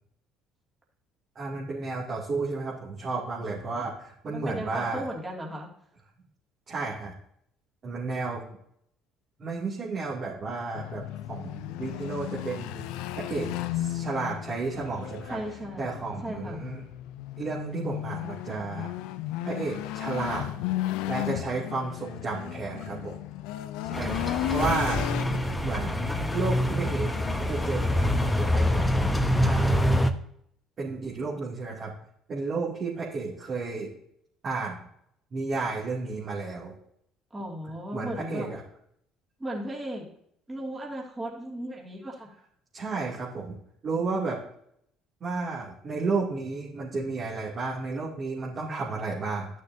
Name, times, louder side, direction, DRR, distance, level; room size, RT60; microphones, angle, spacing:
voice 1, 1.4-5.1 6.7-7.1 7.8-8.4 9.4-12.9 13.2-15.4 15.8-16.8 17.4-18.9 19.4-20.5 21.1-23.1 23.8-24.2 24.5-25.1 25.3-28.9 29.4-29.8 30.8-31.9 32.3-33.9 34.4-34.8 35.3-36.7 37.9-38.6 42.7-43.6 43.8-44.4 45.2-49.5, right 3 dB, 45° right, -6 dB, 2.5 m, -32 dB
voice 2, 4.3-5.7 15.3-15.9 16.2-16.6 37.3-38.5 39.4-40.1 40.5-42.3, right 1 dB, 20° right, -2 dB, 2.5 m, -36 dB
sound 1, 10.7-29.7, left 14 dB, 75° left, 0.4 m, -35 dB
sound 2, 23.9-30.1, equal, 10° left, 0.9 m, -25 dB
12.0 x 6.4 x 2.8 m, 0.70 s
hypercardioid pair, 65°, 0 cm